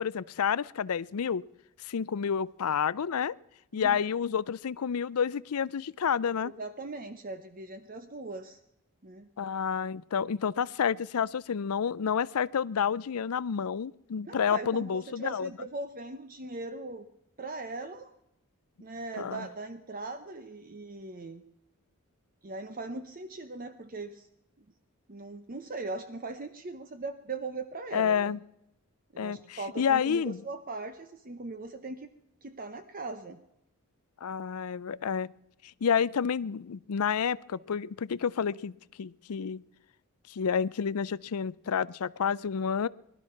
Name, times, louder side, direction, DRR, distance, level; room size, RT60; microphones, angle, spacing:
voice 1, 0.0-1.4 1.8-3.3 3.7-6.5 9.4-15.5 19.2-19.5 27.9-28.4 29.2-30.4 34.2-35.3 35.8-39.6 40.3-42.9, left 7 dB, 80° left, 20 dB, 0.5 m, -29 dB
voice 2, 6.4-8.6 9.0-9.3 14.2-17.0 17.4-18.1 18.8-21.4 22.4-24.3 25.1-28.4 29.1-32.1 32.4-33.4, right 3 dB, 40° right, 9 dB, 0.8 m, -40 dB
20.0 x 12.5 x 5.8 m, 0.84 s
head